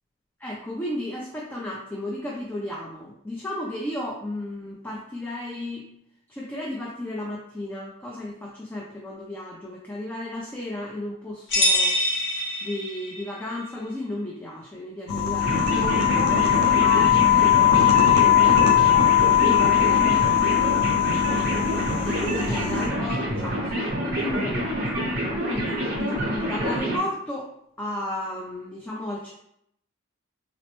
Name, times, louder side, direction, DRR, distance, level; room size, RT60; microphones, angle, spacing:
voice 1, 0.4-5.9 6.3-12.0 12.6-19.1 19.4-20.8 22.0-25.0 25.5-27.5 27.8-29.3, left 1 dB, 10° left, -3 dB, 0.3 m, -33 dB
sound 1, 11.5-13.3, left 1 dB, 55° left, 1.0 m, -24 dB
sound 2, 15.1-22.9, left 10 dB, 85° left, 0.5 m, -20 dB
sound 3, 15.4-27.0, equal, 45° right, 0.8 m, -27 dB
3.9 x 2.1 x 2.9 m, 0.74 s
head